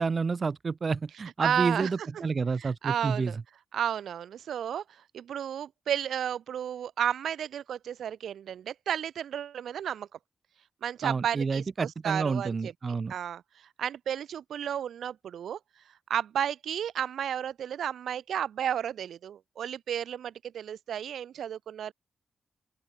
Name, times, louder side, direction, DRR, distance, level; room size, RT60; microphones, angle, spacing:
voice 1, 0.0-3.3 11.0-13.1, right 4 dB, 50° right, 1.5 m, -29 dB
voice 2, 1.4-1.9 2.6-3.4 3.7-10.1 10.8-12.7 13.1-15.6 16.1-21.9, right 9 dB, 80° right, 1.9 m, -32 dB
open air
supercardioid pair, 50°, 0 cm